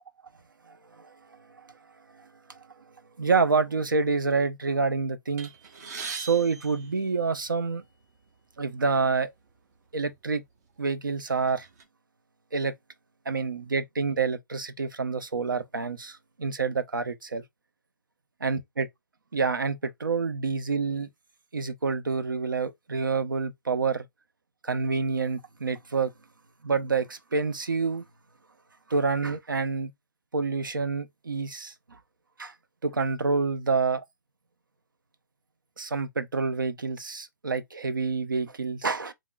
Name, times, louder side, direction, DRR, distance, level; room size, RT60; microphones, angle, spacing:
voice 1, 0.7-1.1 1.5-1.6 2.1-2.3 3.2-5.5 6.1-7.8 8.6-9.3 9.9-10.4 10.8-11.7 12.5-12.7 13.3-17.4 18.4-18.9 19.3-21.1 21.5-24.0 24.6-26.1 26.6-28.0 28.9-29.9 30.3-32.0 32.4-32.5 32.8-34.0 35.8-39.1, right 4 dB, 90° right, 0.5 m, -28 dB
sound 1, 5.4-7.7 8.5-8.7 9.0-9.2 10.0-10.2 10.7-11.8, right 5 dB, 55° right, 1.1 m, -41 dB
3.6 x 3.1 x 2.3 m
hypercardioid pair, 130°, 11 cm